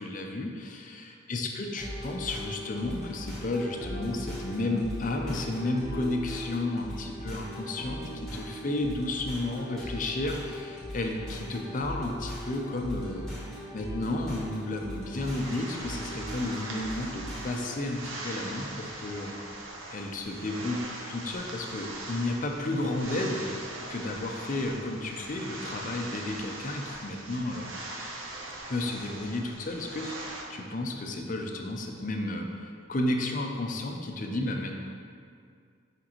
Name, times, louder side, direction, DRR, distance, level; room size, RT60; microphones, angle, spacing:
voice 1, 0.0-0.8 1.3-8.0 8.3-13.3 13.7-23.5 23.9-27.7 28.7-34.7, left 2 dB, 40° left, 2 dB, 0.5 m, -32 dB
sound 1, 1.8-17.8, equal, 5° left, 1.2 m, -39 dB
sound 2, 15.1-30.4, right 2 dB, 75° right, 0.8 m, -41 dB
6.2 x 5.1 x 3.0 m, 2.2 s
head